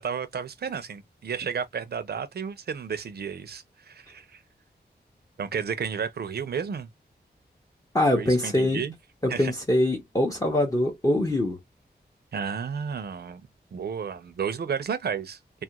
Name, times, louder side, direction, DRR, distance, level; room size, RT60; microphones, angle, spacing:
voice 1, 0.0-4.4 5.4-6.9 8.2-8.9 9.3-9.5 12.3-13.4 13.7-15.4, right 6 dB, 65° right, 0.5 m, -32 dB
voice 2, 7.9-8.8 9.2-11.6, left 1 dB, 20° left, 0.6 m, -23 dB
2.4 x 2.2 x 2.8 m
wide cardioid pair, 110°, 18 cm